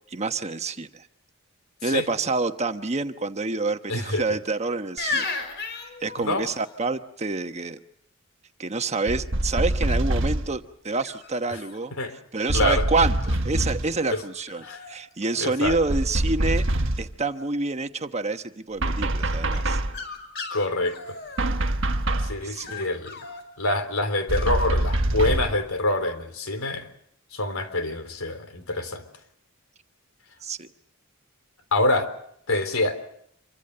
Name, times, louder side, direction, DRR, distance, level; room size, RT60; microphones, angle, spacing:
voice 1, 0.1-1.1 1.8-5.2 6.0-7.8 8.6-11.9 12.3-16.6 17.0-19.8 22.4-22.7 30.4-30.7, right 3 dB, 30° right, 8 dB, 1.1 m, -27 dB
voice 2, 3.9-4.2 6.2-6.5 12.0-12.1 12.5-12.9 14.1-14.2 14.6-14.8 15.4-15.8 20.5-21.0 22.2-23.2 23.6-26.9 27.3-29.0 31.7-32.1 32.5-33.0, left 2 dB, 80° left, 9 dB, 3.6 m, -26 dB
sound 1, 5.0-6.7 9.9-10.3 11.0-11.9 12.5-13.4 14.1-14.2 14.5-15.0 15.2-15.8 19.5-22.0 22.6-23.4 24.3-24.5, left 4 dB, 55° left, 5.4 m, -36 dB
sound 2, 9.1-10.6 12.5-13.9 15.7-17.1 18.8-20.0 21.4-22.4 24.3-25.6, right 1 dB, 65° right, 1.4 m, -25 dB
27.0 x 24.0 x 6.8 m, 0.70 s
head